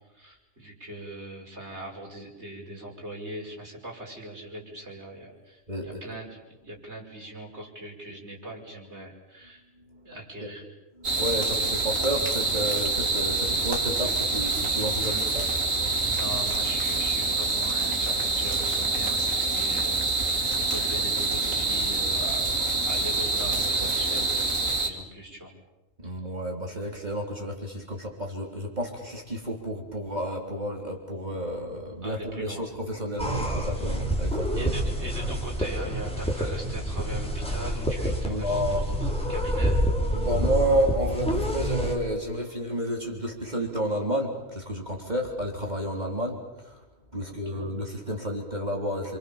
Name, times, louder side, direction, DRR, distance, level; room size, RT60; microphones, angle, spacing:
voice 1, 0.1-9.6 10.0-10.7 14.7-15.3 16.0-22.5 22.9-25.5 32.0-32.6 33.3-34.0 34.6-39.8 47.3-47.7, right 1 dB, 55° right, 0 dB, 6.0 m, -40 dB
voice 2, 5.7-6.0 9.9-10.0 10.4-10.5 11.2-15.4 15.7-16.0 26.0-34.7 38.3-38.8 40.1-46.8 47.1-49.2, equal, 30° right, 1 dB, 3.7 m, -31 dB
sound 1, 11.0-24.9, right 3 dB, 75° right, 3.1 m, -26 dB
sound 2, 33.2-41.9, equal, 5° left, 4.2 m, -27 dB
28.0 x 25.5 x 7.2 m, 1.0 s
omnidirectional pair, 1.4 m